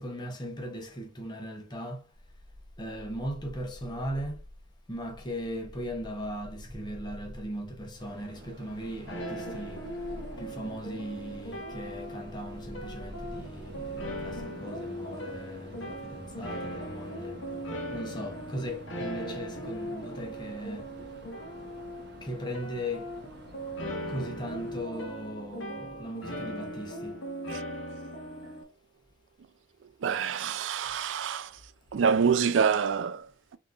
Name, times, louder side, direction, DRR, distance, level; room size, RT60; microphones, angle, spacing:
voice 1, 0.0-2.1 2.8-4.4 4.9-9.9 10.4-17.4 17.9-20.9 22.2-23.1 24.1-27.2, equal, 20° left, 0.9 m, -38 dB
sound 1, 2.1-14.5, left 1 dB, 25° right, 0.7 m, -48 dB
sound 2, 8.0-24.8, right 1 dB, 60° right, 0.9 m, -49 dB
sound 3, 9.1-28.6, equal, 75° left, 1.0 m, -39 dB
voice 2, 30.0-31.6 31.9-33.6, right 6 dB, 75° right, 0.4 m, -27 dB
3.6 x 3.0 x 2.5 m
head